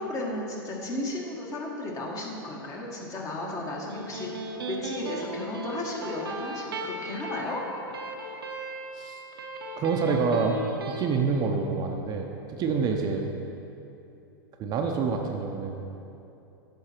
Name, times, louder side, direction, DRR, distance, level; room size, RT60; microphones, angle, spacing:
voice 1, 0.0-4.3 4.7-7.6, left 2 dB, 30° left, -1 dB, 1.5 m, -34 dB
Electric guitar, 3.7-11.1, right 2 dB, 85° right, 0.8 m, -37 dB
voice 2, 9.8-10.6 10.9-13.3 14.6-15.7, right 5 dB, 35° right, 3 dB, 0.6 m, -27 dB
8.6 x 6.2 x 4.5 m, 2.8 s
hypercardioid pair, 105°, 12 cm